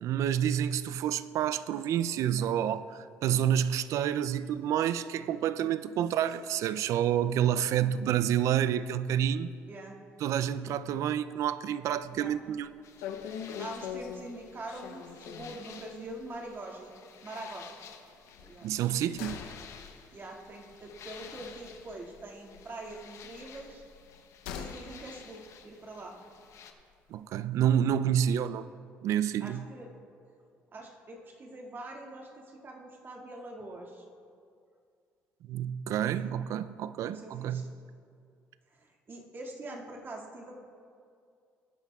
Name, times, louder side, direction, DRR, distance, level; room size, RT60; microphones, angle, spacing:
voice 1, 0.0-9.5 10.2-12.7 18.6-19.5 27.1-28.7 29.0-29.6 35.5-37.6, right 10 dB, 70° right, 0.4 m, -29 dB
sound 1, 12.1-12.4 12.6-12.7 13.0-15.7 16.1-16.2 16.5-16.6 18.3-22.2 22.5-24.9 25.2-25.3, left 8 dB, 90° left, 0.7 m, -43 dB
sound 2, 12.8-26.7, left 7 dB, 65° left, 0.9 m, -52 dB
voice 2, 13.6-16.9 17.2-17.7 18.4-18.7 20.1-23.8 24.5-26.1 29.4-29.9 30.7-34.1 36.1-36.3 37.1-37.7 38.7-40.6, right 2 dB, 40° right, 2.1 m, -44 dB
20.0 x 10.5 x 2.4 m
supercardioid pair, 70°, 6 cm